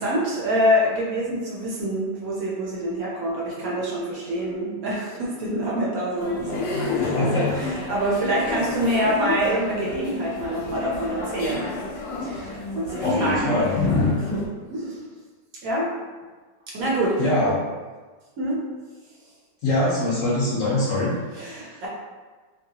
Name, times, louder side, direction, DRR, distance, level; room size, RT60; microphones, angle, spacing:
voice 1, 0.0-11.7 12.2-13.5 14.2-14.4 14.7-15.0 15.6-15.9 16.7-17.5 18.4-18.6 21.3-21.9, equal, 70° right, -5 dB, 1.0 m, -26 dB
sound 1, 6.2-14.5, left 3 dB, 80° left, 1.2 m, -28 dB
voice 2, 7.0-7.6 13.0-13.8 17.2-17.6 19.6-21.8, left 1 dB, 65° left, -6 dB, 0.9 m, -24 dB
2.8 x 2.7 x 2.7 m, 1.3 s
omnidirectional pair, 1.9 m